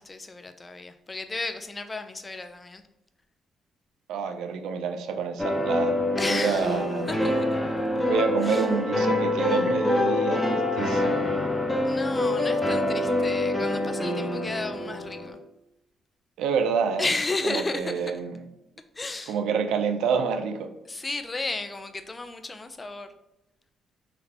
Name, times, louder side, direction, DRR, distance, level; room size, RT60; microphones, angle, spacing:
voice 1, 0.0-2.8 6.2-7.6 8.4-8.7 11.8-15.4 17.0-18.1 18.9-19.4 20.9-23.1, left 2 dB, 25° left, 8 dB, 0.4 m, -33 dB
voice 2, 4.1-5.9 6.3-7.1 8.1-11.2 16.4-17.1 17.5-18.4 19.3-20.7, right 6 dB, 85° right, 8 dB, 0.4 m, -27 dB
sound 1, 5.4-15.3, left 1 dB, 5° left, 0.9 m, -26 dB
4.0 x 2.8 x 3.3 m, 0.87 s
cardioid pair, 90°, 0 cm